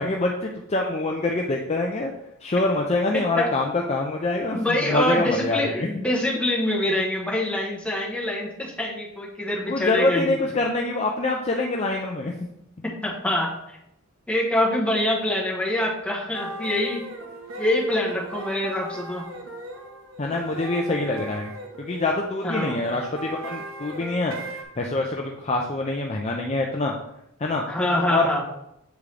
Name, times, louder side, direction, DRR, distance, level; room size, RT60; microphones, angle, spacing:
voice 1, 0.0-2.1 2.4-4.6 4.9-5.9 9.7-12.5 20.2-26.9 27.4-27.6 28.1-28.3, left 2 dB, 30° left, 0 dB, 0.5 m, -25 dB
voice 2, 3.1-3.5 4.5-10.4 12.8-13.8 14.3-17.0 17.6-19.2 22.4-22.7 27.7-28.4, left 1 dB, 5° left, -3 dB, 1.1 m, -25 dB
sound 1, 16.3-24.6, right 1 dB, 75° right, 0.9 m, -38 dB
8.1 x 3.7 x 3.3 m, 0.82 s
head